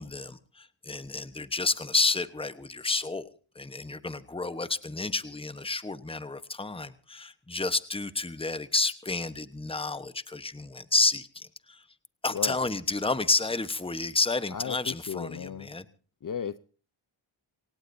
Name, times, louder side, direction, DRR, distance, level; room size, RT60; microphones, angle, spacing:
voice 1, 0.0-3.3 3.5-11.8 12.2-15.9, left 3 dB, 10° left, 1.0 m, -30 dB
voice 2, 14.5-15.7 16.2-16.6, left 7 dB, 40° left, 0.7 m, -35 dB
25.5 x 18.0 x 2.7 m
cardioid pair, 65°, 50 cm